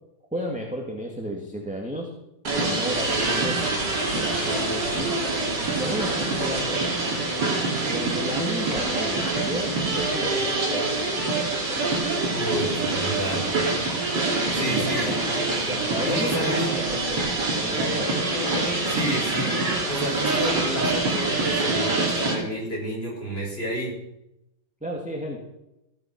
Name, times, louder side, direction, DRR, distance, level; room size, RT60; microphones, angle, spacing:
voice 1, 0.3-2.1 2.5-3.7 4.0-5.2 5.7-6.8 7.9-10.8 14.7-15.2 15.6-16.5 16.9-17.2 17.5-18.2 24.8-25.4, equal, 5° right, -1 dB, 1.8 m, -33 dB
sound 1, 2.4-22.3, right 2 dB, 50° right, 3.4 m, -25 dB
voice 2, 12.3-13.6 14.5-15.4 16.0-16.7 18.9-24.0, equal, 25° left, -2 dB, 5.5 m, -30 dB
15.5 x 11.0 x 5.9 m, 0.87 s
omnidirectional pair, 2.4 m